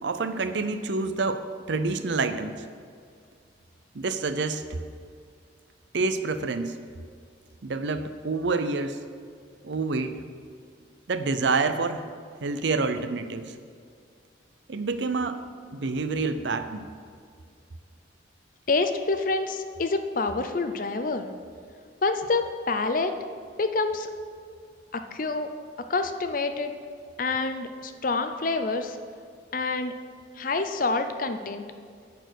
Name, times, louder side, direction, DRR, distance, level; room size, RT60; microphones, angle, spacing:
voice 1, 0.0-2.5 3.9-4.8 5.9-6.8 7.6-9.0 9.6-10.2 11.1-12.1 12.4-13.5 14.7-15.4 15.7-16.8, right 3 dB, 65° right, 10 dB, 0.6 m, -28 dB
voice 2, 18.7-21.3 22.0-23.2 23.6-24.1 24.9-25.5 25.9-26.7 27.2-29.0 29.5-29.9 30.4-31.6, left 3 dB, 45° left, 8 dB, 0.6 m, -27 dB
11.0 x 4.5 x 8.0 m, 2.2 s
head